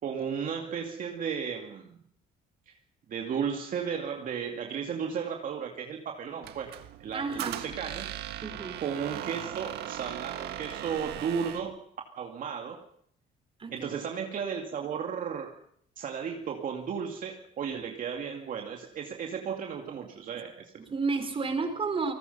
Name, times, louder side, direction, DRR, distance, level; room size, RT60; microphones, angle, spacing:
voice 1, 0.0-2.0 2.7-2.8 3.1-8.1 8.8-11.8 12.2-12.9 13.7-15.5 16.0-20.7, right 7 dB, 55° right, 2 dB, 2.4 m, -34 dB
Squeak, 6.4-11.7, right 12 dB, 75° right, 1.7 m, -38 dB
voice 2, 7.1-7.6 8.4-8.8 13.6-13.9 20.9-22.1, right 4 dB, 30° right, 7 dB, 4.7 m, -31 dB
29.5 x 19.5 x 5.6 m, 0.67 s
cardioid pair, 110°, 17 cm